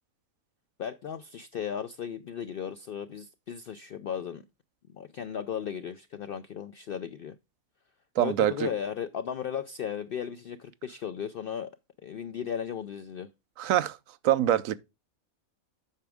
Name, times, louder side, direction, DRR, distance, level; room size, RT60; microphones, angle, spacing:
voice 1, 0.8-4.4 4.9-7.4 8.2-11.7 12.0-13.3, left 8 dB, 70° left, 0.5 m, -36 dB
voice 2, 8.2-8.7 13.6-14.0 14.2-14.8, right 12 dB, 75° right, 0.9 m, -24 dB
8.5 x 6.1 x 3.4 m
omnidirectional pair, 1.4 m